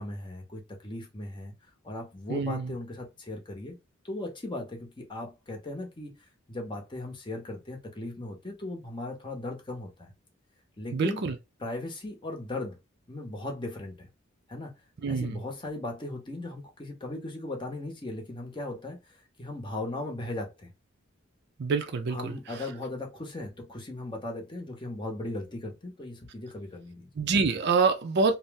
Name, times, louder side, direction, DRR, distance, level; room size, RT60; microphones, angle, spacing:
voice 1, 0.0-1.5 1.8-3.8 4.0-6.2 6.5-10.1 10.8-11.2 11.6-12.8 13.1-14.1 14.5-14.7 15.1-19.0 19.4-20.7 22.1-27.1, left 2 dB, 25° left, 0.7 m, -37 dB
voice 2, 2.3-2.7 10.9-11.3 15.0-15.4 21.6-22.4 27.2-28.4, right 4 dB, 50° right, 0.4 m, -26 dB
2.7 x 2.0 x 3.3 m
head